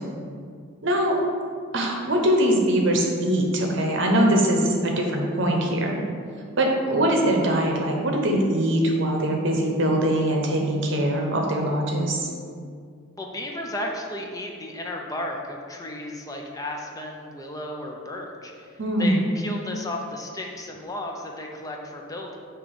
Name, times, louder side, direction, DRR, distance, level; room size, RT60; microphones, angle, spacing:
voice 1, 0.8-1.2 1.7-6.0 6.6-12.3 18.8-19.2, right 1 dB, 60° right, 1 dB, 0.9 m, -22 dB
voice 2, 13.2-18.7 19.0-22.4, left 1 dB, 15° left, 1 dB, 0.5 m, -34 dB
6.7 x 3.0 x 5.3 m, 2.2 s
head